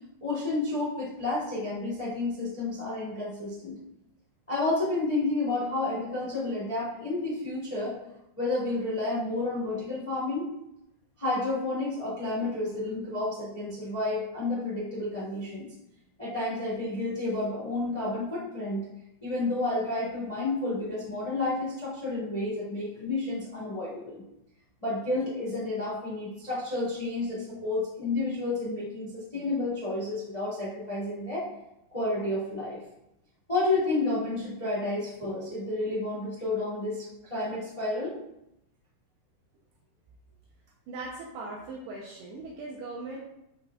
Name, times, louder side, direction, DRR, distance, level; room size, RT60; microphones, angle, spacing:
voice 1, 0.2-3.8 4.5-7.9 8.4-10.5 11.2-15.7 16.2-18.8 19.2-24.2 24.8-31.5 31.9-32.8 33.5-38.1, left 2 dB, 35° left, -8 dB, 0.5 m, -30 dB
voice 2, 40.9-43.2, right 3 dB, 80° right, -2 dB, 2.3 m, -39 dB
11.5 x 4.9 x 2.4 m, 0.85 s
omnidirectional pair, 5.7 m